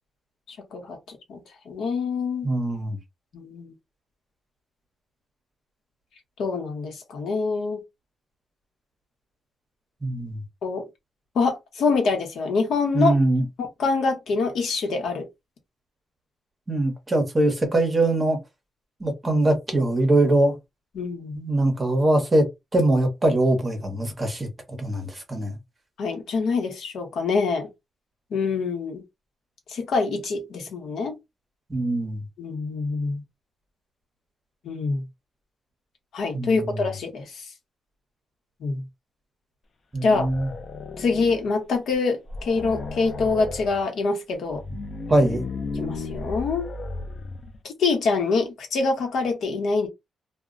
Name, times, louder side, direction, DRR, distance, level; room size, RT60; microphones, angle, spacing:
voice 1, 0.5-1.4 1.7-2.5 3.3-3.7 6.4-7.8 10.6-10.9 11.3-13.1 13.6-15.3 20.9-21.4 26.0-27.7 28.3-29.0 29.7-31.2 32.4-33.2 34.6-35.0 36.1-37.5 38.6-38.8 40.0-40.3 41.0-44.6 45.7-46.7 47.6-49.9, left 4 dB, 75° left, 0.9 m, -25 dB
voice 2, 2.4-3.0 10.0-10.4 12.9-13.5 16.7-18.4 19.0-20.5 21.3-22.5 22.7-24.5 24.8-25.6 31.7-32.2 36.3-36.8 39.9-40.5 45.1-45.4, right 1 dB, 20° right, 0.8 m, -22 dB
sound 1, 40.1-41.6 41.9-42.0 42.3-43.8 44.5-47.6, left 3 dB, 40° left, 0.5 m, -34 dB
2.2 x 2.1 x 3.6 m
wide cardioid pair, 160°, 0 cm